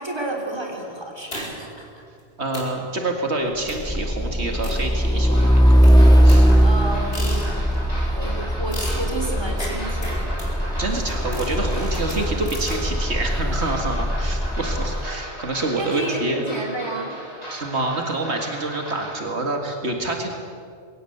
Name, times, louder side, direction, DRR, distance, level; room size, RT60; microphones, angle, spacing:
voice 1, 0.0-1.9 6.6-7.6 8.1-10.3 15.7-17.2, right 1 dB, 25° right, 1 dB, 3.4 m, -31 dB
sound 1, 1.3-1.8 2.2-2.3 2.5-2.8 3.7-4.0 4.6-5.4 5.8-7.8 8.7-12.8, equal, 60° left, 4.7 m, -36 dB
voice 2, 2.4-5.8 6.2-6.5 10.8-16.4 17.5-20.3, right 2 dB, 75° right, 3 dB, 2.3 m, -27 dB
Truck, 3.7-15.1, equal, 5° left, 0.5 m, -19 dB
sound 2, 5.3-19.1, equal, 35° left, 5.8 m, -37 dB
22.5 x 17.5 x 8.0 m, 2.3 s
omnidirectional pair, 1.1 m